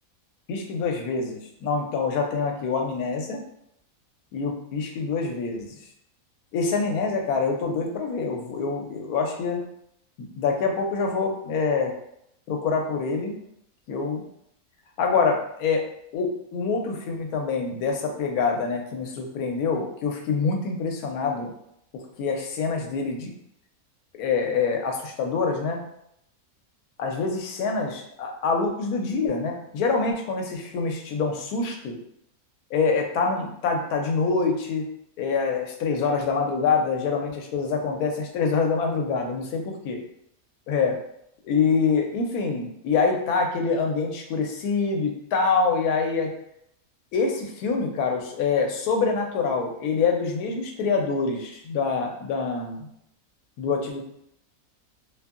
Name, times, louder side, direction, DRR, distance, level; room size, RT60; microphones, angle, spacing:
voice 1, 0.5-3.4 4.3-5.7 6.5-9.6 10.2-11.9 12.5-13.3 13.9-14.2 15.0-15.8 16.1-21.5 21.9-23.3 24.2-25.8 27.0-31.9 32.7-34.8 35.2-40.0 40.7-41.0 41.4-46.3 47.1-52.9 53.6-54.0, left 4 dB, 85° left, 2 dB, 1.1 m, -25 dB
2.7 x 2.6 x 2.4 m, 0.74 s
omnidirectional pair, 1.5 m